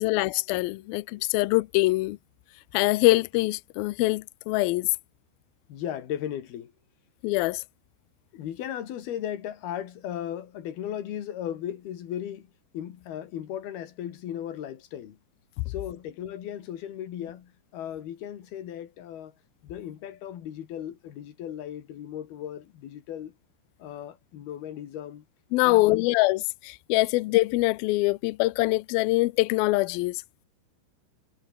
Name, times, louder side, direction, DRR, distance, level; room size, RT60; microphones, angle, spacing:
voice 1, 0.0-2.2 2.7-4.9 7.2-7.6 25.5-30.2, left 21 dB, 85° left, 2.1 m, -24 dB
voice 2, 0.7-1.3 5.7-6.7 8.3-15.2 15.7-19.3 19.6-23.4 23.8-25.3 25.6-26.1, left 10 dB, 65° left, 3.9 m, -36 dB
omnidirectional pair, 5.0 m